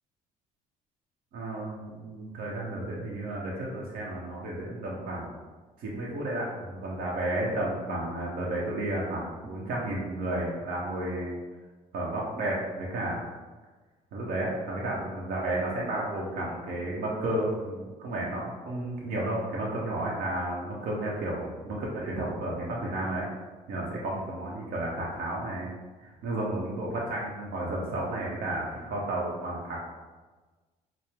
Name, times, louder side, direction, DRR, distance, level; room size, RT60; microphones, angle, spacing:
voice 1, 1.3-5.3 5.8-11.4 11.9-13.2 14.1-23.3 23.7-25.7 26.0-29.8, right 1 dB, 70° right, -4 dB, 0.8 m, -32 dB
4.5 x 2.0 x 3.4 m, 1.3 s
supercardioid pair, 85°, 16 cm